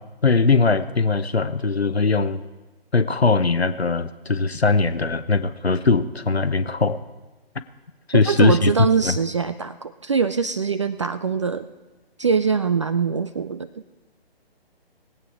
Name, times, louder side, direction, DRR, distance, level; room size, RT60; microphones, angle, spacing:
voice 1, 0.2-2.4 2.9-7.0 8.1-8.7 9.0-9.2, left 4 dB, 85° left, 12 dB, 1.0 m, -20 dB
voice 2, 8.1-11.6 12.2-13.7, right 5 dB, 30° right, 13 dB, 0.4 m, -23 dB
20.0 x 8.5 x 4.8 m, 1.2 s
figure-of-eight pair, 135°, 31 cm